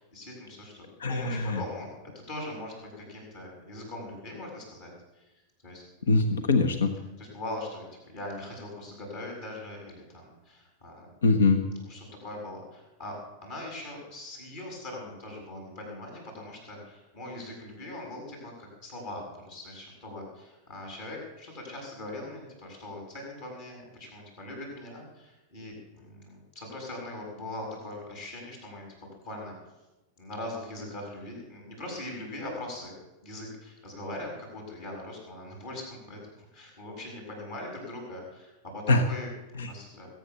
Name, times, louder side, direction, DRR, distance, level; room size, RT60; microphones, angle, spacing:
voice 1, 0.0-1.9 2.3-5.3 5.6-6.2 7.2-11.1 11.8-29.5 30.2-32.9 33.2-40.1, left 1 dB, 50° left, 0 dB, 7.4 m, -41 dB
voice 2, 1.0-1.6 6.1-6.9 11.2-11.6 38.9-39.0 39.6-39.7, left 3 dB, 65° left, 9 dB, 1.3 m, -23 dB
20.5 x 9.4 x 7.0 m, 1.0 s
figure-of-eight pair, 90°, 0 cm